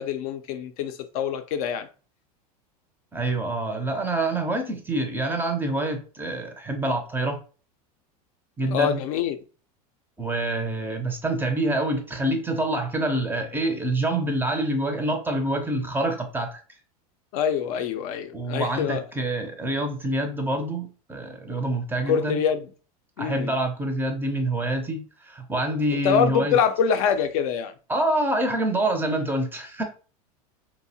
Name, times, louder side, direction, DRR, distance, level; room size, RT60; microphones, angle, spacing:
voice 1, 0.0-1.9 8.7-9.4 17.3-19.0 22.1-22.7 23.2-23.5 25.9-27.7, left 7 dB, 65° left, 0.4 m, -25 dB
voice 2, 3.1-7.4 8.6-9.0 10.2-16.6 18.3-22.4 23.2-26.6 27.9-29.8, right 1 dB, 10° right, 0.4 m, -26 dB
2.7 x 2.0 x 2.6 m
hypercardioid pair, 105°, 20 cm